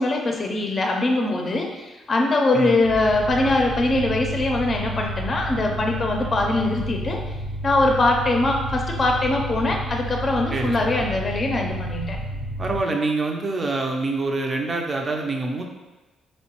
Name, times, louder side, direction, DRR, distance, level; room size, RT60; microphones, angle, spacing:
voice 1, 0.0-7.2 7.6-12.2, left 2 dB, 40° left, 1 dB, 0.5 m, -22 dB
sound 1, 2.8-12.8, right 1 dB, 90° right, 1.1 m, -31 dB
voice 2, 10.5-11.1 12.6-15.7, right 3 dB, 35° right, 2 dB, 0.5 m, -26 dB
3.7 x 2.1 x 2.9 m, 1.1 s
cardioid pair, 85°, 0 cm